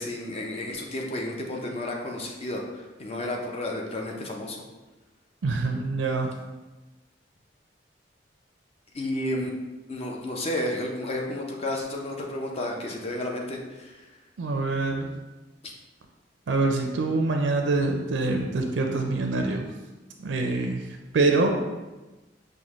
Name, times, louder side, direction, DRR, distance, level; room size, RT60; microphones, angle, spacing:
voice 1, 0.0-4.6 8.9-9.5 9.9-14.1, left 1 dB, 35° left, 0 dB, 0.5 m, -32 dB
voice 2, 5.4-6.3 14.4-15.1 16.5-19.7 20.2-21.5, right 3 dB, 90° right, 3 dB, 0.4 m, -25 dB
5.2 x 2.1 x 3.0 m, 1.1 s
head